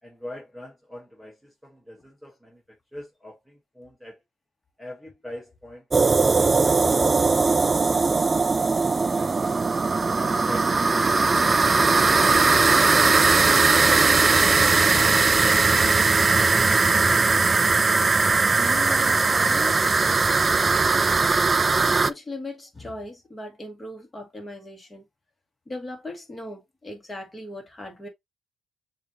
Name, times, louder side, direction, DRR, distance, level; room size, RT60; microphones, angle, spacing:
voice 1, 0.0-4.2 4.8-7.5 7.9-9.5, left 1 dB, ahead, 1.2 m, -44 dB
sound 1, 5.9-22.1, right 4 dB, 30° right, 0.3 m, -19 dB
voice 2, 18.3-21.6 22.1-25.1 25.7-28.1, left 1 dB, 20° left, 2.0 m, -38 dB
6.9 x 2.8 x 2.8 m
cardioid pair, 100°, 0 cm